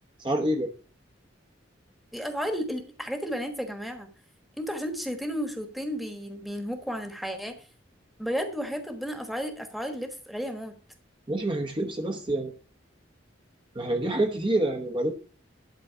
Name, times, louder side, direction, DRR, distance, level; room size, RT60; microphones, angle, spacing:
voice 1, 0.2-0.7 11.3-12.5 13.7-15.1, right 1 dB, 25° right, 3 dB, 1.0 m, -27 dB
voice 2, 2.1-4.1 4.6-7.6 8.2-10.8, equal, ahead, 5 dB, 1.3 m, -33 dB
11.5 x 3.9 x 6.8 m, 0.39 s
head